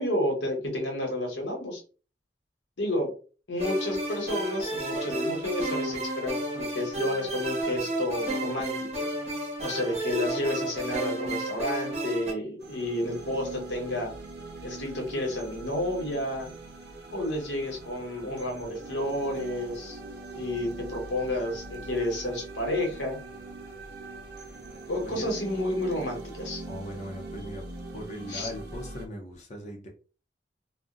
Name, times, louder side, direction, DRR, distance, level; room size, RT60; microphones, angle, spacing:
voice 1, 0.0-1.8 2.8-3.1 3.5-9.0 9.6-14.1 14.6-16.5 17.1-20.0 20.3-23.2 24.9-26.6 28.3-28.5, left 1 dB, 90° left, 1 dB, 1.1 m, -30 dB
sound 1, 3.6-12.3, right 1 dB, 35° right, 0.9 m, -32 dB
sound 2, 12.6-29.1, right 2 dB, 65° right, 0.7 m, -42 dB
voice 2, 26.6-27.6 27.9-29.9, left 1 dB, 40° left, 0 dB, 0.6 m, -39 dB
2.4 x 2.1 x 3.7 m, 0.37 s
head